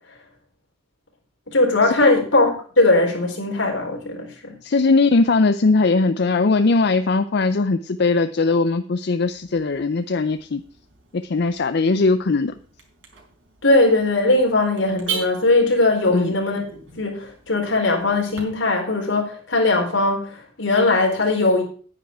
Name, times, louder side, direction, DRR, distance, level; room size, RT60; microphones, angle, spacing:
voice 1, 1.5-4.5 13.6-21.6, left 2 dB, 85° left, 1 dB, 4.2 m, -20 dB
voice 2, 4.6-10.6 11.1-12.5 16.1-16.4, left 3 dB, 60° left, 10 dB, 0.5 m, -19 dB
Car / Alarm, 9.3-18.4, right 6 dB, 85° right, 4.2 m, -39 dB
10.5 x 9.8 x 4.6 m, 0.42 s
head